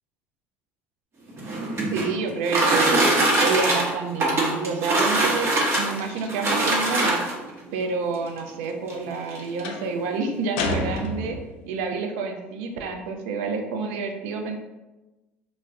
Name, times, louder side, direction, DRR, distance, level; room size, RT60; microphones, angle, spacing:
sound 1, 1.3-7.5 8.4-8.5 8.9-9.0 9.3-9.7, right 2 dB, 40° right, 0.8 m, -22 dB
voice 1, 1.9-3.0 3.4-5.5 5.8-7.2 7.7-11.4 11.7-14.6, right 4 dB, 75° right, 4 dB, 0.4 m, -28 dB
sound 2, 5.7-6.3 9.6-9.9 10.6-11.6, left 2 dB, 75° left, 0.4 m, -29 dB
2.2 x 2.0 x 3.5 m, 1.1 s
hypercardioid pair, 75°, 6 cm